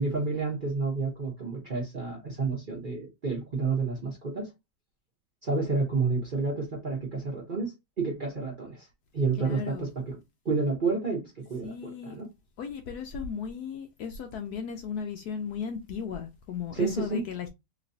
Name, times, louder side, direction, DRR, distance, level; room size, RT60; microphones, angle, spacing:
voice 1, 0.0-4.5 5.4-8.9 9.1-10.2 10.4-12.3 16.7-17.2, right 4 dB, 40° right, 0.7 m, -30 dB
voice 2, 9.4-9.9 11.6-12.1 12.6-17.5, left 7 dB, 70° left, 0.9 m, -36 dB
3.0 x 3.0 x 2.7 m
omnidirectional pair, 2.0 m